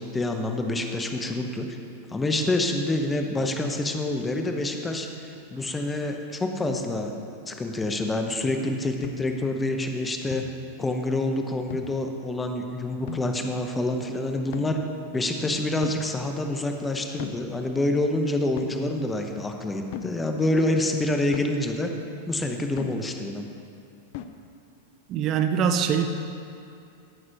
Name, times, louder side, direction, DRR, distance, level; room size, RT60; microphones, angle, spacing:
voice 1, 0.0-1.7 2.1-7.1 7.5-10.4 10.8-14.8 15.1-21.9 22.3-23.5, left 2 dB, 15° left, 4 dB, 0.8 m, -27 dB
sound 1, 9.0-9.3 10.3-10.7 11.7-12.1 13.1-13.4 14.5-14.9 15.8-16.2 17.2-17.5 18.6-18.8 19.9-20.2 21.3-21.6 22.8-23.1 24.1-24.3, left 9 dB, 60° left, 0.5 m, -37 dB
voice 2, 25.1-26.1, right 7 dB, 40° right, 7 dB, 0.5 m, -23 dB
9.0 x 4.2 x 6.3 m, 2.6 s
hypercardioid pair, 105°, 0 cm